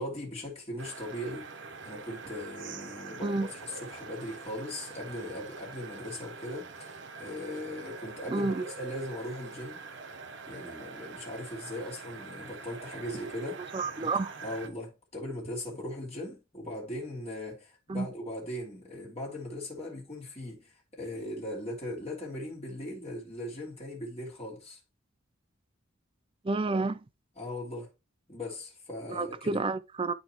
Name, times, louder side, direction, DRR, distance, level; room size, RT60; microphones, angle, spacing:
voice 1, 0.0-1.5 1.8-9.8 10.5-13.6 14.0-14.1 14.4-24.8 27.4-27.9 28.3-29.6, left 1 dB, 30° left, 3.1 m, -39 dB
sound 1, 0.8-14.7, right 4 dB, 60° right, 1.0 m, -44 dB
voice 2, 8.3-8.6 13.7-14.3 17.9-18.1 26.4-27.0 29.1-30.1, right 3 dB, 25° right, 0.4 m, -29 dB
12.5 x 4.1 x 3.0 m
head